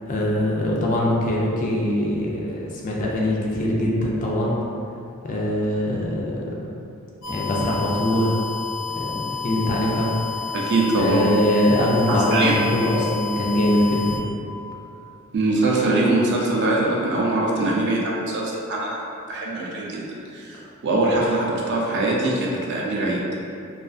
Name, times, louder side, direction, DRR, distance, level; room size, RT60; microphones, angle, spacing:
voice 1, 0.1-4.6 5.2-6.4 7.3-8.4 8.9-9.2 9.4-10.1 11.0-14.3, left 1 dB, 35° left, -4 dB, 0.4 m, -22 dB
sound 1, 7.2-14.2, left 6 dB, 90° left, 0.6 m, -31 dB
voice 2, 10.5-11.3 12.1-12.6 15.3-20.0 20.3-23.2, right 2 dB, 50° right, -3 dB, 0.4 m, -22 dB
2.4 x 2.3 x 2.4 m, 2.6 s
head